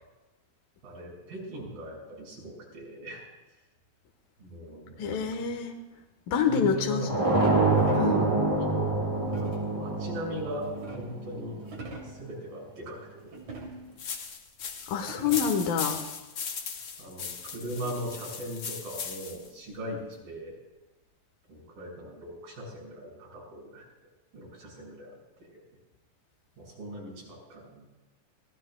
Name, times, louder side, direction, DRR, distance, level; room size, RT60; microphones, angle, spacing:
voice 1, 0.8-3.2 4.4-5.2 6.5-7.3 7.9-10.7 10.9-11.6 12.0-13.4 17.0-17.3 17.5-20.6 21.5-23.8 24.3-25.6 26.6-27.8, right 1 dB, 80° right, -3 dB, 8.2 m, -39 dB
voice 2, 5.0-5.7 6.3-7.0 8.0-8.2 14.9-16.0, left 6 dB, 80° left, 3 dB, 2.9 m, -27 dB
sound 1, 7.1-11.8, right 2 dB, 20° right, 0.9 m, -26 dB
sound 2, 7.4-8.3 9.3-9.8 10.4-11.2 11.6-12.2 13.3-14.0 14.6-14.7 14.9-15.7 17.1-18.2, right 2 dB, 50° right, 3.9 m, -44 dB
sound 3, 14.0-19.5, left 6 dB, 55° left, 1.6 m, -38 dB
27.0 x 17.5 x 2.3 m, 1.1 s
omnidirectional pair, 4.1 m